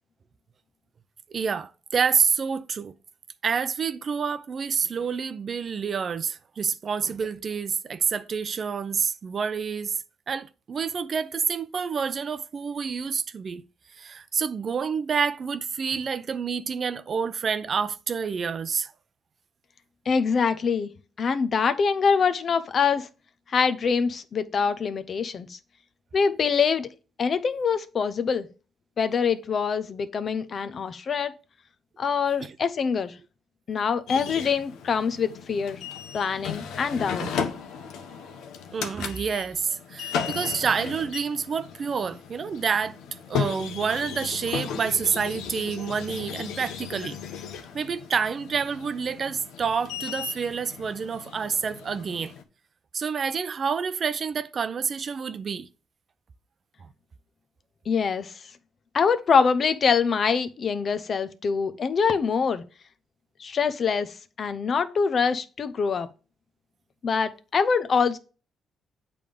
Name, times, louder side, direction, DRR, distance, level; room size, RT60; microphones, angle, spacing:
voice 1, 1.3-2.9 3.4-9.9 10.3-13.6 14.0-18.9 32.4-32.5 37.2-37.3 38.7-43.0 43.3-47.2 47.7-52.3 52.9-55.7, right 6 dB, 45° right, 0.5 m, -28 dB
voice 2, 20.1-20.9 21.2-23.1 23.5-25.6 26.1-26.9 27.2-28.5 29.0-31.3 32.0-33.1 33.7-35.8 36.1-37.2 57.9-58.3 58.9-62.6 63.4-66.1 67.0-68.2, left 6 dB, 50° left, 0.7 m, -24 dB
sound 1, 34.1-52.4, left 7 dB, 85° left, 0.9 m, -35 dB
8.3 x 3.5 x 5.2 m
cardioid pair, 90°, 0 cm